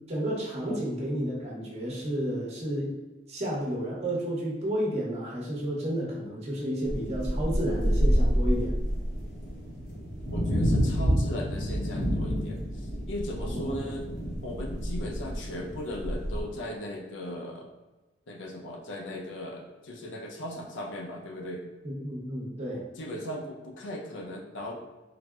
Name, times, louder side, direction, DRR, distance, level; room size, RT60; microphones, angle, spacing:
voice 1, 0.1-2.9 3.3-8.8 13.4-13.8 21.8-22.8, equal, 35° right, -4 dB, 0.8 m, -31 dB
sound 1, 6.8-16.4, equal, 40° left, 0.7 m, -28 dB
voice 2, 10.3-14.1 14.4-17.7 18.3-21.7 23.0-24.8, left 1 dB, 85° left, 1 dB, 0.5 m, -37 dB
3.9 x 2.0 x 2.3 m, 1.2 s
head